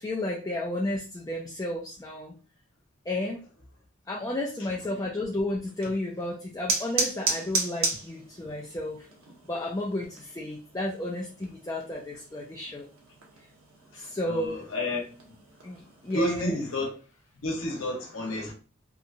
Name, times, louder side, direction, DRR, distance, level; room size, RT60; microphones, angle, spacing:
voice 1, 0.0-2.3 3.1-3.4 4.1-9.1 9.4-12.9 13.9-14.7 15.6-16.5, left 1 dB, 15° left, 0.4 m, -32 dB
sound 1, 5.6-16.8, right 3 dB, 80° right, 0.8 m, -36 dB
voice 2, 13.9-15.0 16.1-16.9 17.4-18.5, left 1 dB, 75° left, 0.8 m, -30 dB
2.8 x 2.2 x 2.5 m
head